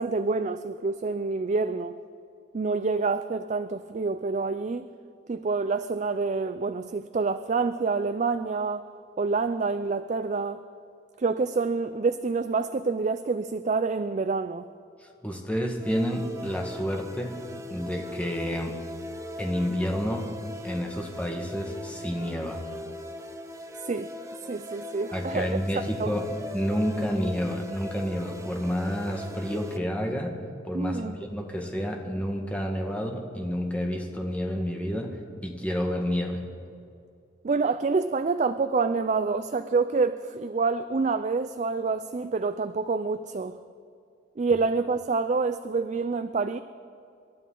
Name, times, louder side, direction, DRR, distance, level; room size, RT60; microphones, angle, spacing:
voice 1, 0.0-2.0 2.5-4.9 5.3-8.9 9.2-10.6 11.2-14.7 23.8-24.1 24.5-25.6 26.0-26.1 30.7-31.2 37.4-43.6 44.4-46.6, right 4 dB, 40° right, 11 dB, 0.4 m, -27 dB
voice 2, 15.0-17.4 17.7-18.7 19.4-20.3 20.6-22.6 25.1-30.3 30.6-35.2 35.4-36.4, equal, 5° left, 1 dB, 1.5 m, -29 dB
sound 1, 15.8-29.8, left 1 dB, 15° right, 0.8 m, -40 dB
26.5 x 12.5 x 3.8 m, 2.4 s
head